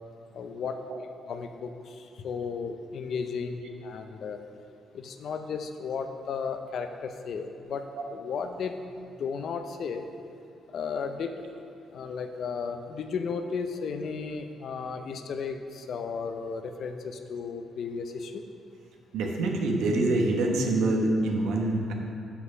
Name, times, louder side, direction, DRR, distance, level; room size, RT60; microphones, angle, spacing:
voice 1, 0.3-1.7 2.0-4.4 4.9-7.8 8.1-8.7 9.2-10.0 10.7-11.5 11.9-18.3, left 5 dB, 65° left, 7 dB, 0.5 m, -34 dB
voice 2, 19.1-21.9, right 2 dB, 85° right, 1 dB, 1.0 m, -25 dB
6.2 x 5.9 x 5.4 m, 2.6 s
cardioid pair, 90°, 0 cm